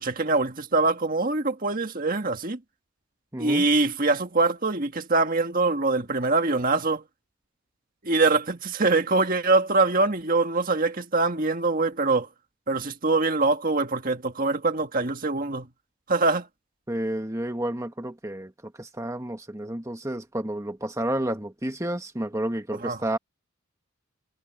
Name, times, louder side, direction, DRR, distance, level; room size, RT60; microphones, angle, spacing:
voice 1, 0.0-2.6 3.4-7.0 8.0-12.3 12.7-15.7 16.1-16.5 22.8-23.0, right 3 dB, 40° right, 1.6 m, -23 dB
voice 2, 3.3-3.7 16.9-23.2, right 1 dB, 15° right, 1.5 m, -30 dB
head